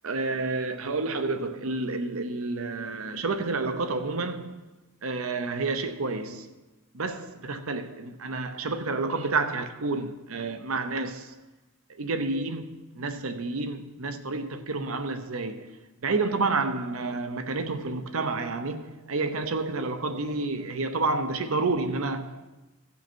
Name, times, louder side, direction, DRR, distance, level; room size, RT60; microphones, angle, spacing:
voice 1, 0.0-4.6 5.0-6.6 6.9-11.4 12.0-22.5, right 3 dB, 80° right, 0.8 m, -30 dB
16.0 x 5.6 x 4.5 m
head